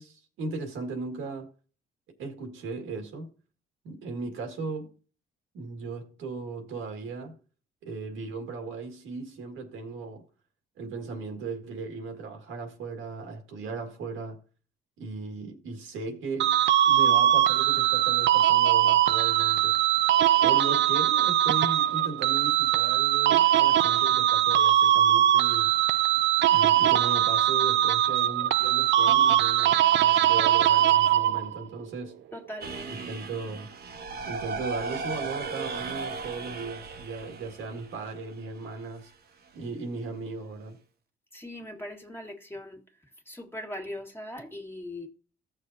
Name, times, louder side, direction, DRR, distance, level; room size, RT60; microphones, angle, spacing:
voice 1, 0.0-1.5 2.2-3.3 3.8-4.9 5.5-7.4 7.8-10.2 10.8-14.4 15.0-16.6 16.9-19.8 20.4-25.7 26.5-32.2 32.9-33.7 34.2-39.1 39.5-40.8, right 4 dB, 85° right, 1.9 m, -37 dB
sound 1, 16.4-31.6, right 12 dB, 70° right, 0.4 m, -21 dB
voice 2, 32.3-33.2 41.3-42.8 43.3-45.1, left 1 dB, 10° left, 1.7 m, -40 dB
sound 2, 32.6-38.6, right 4 dB, 50° right, 1.1 m, -36 dB
15.0 x 6.5 x 2.7 m
cardioid pair, 90°, 20 cm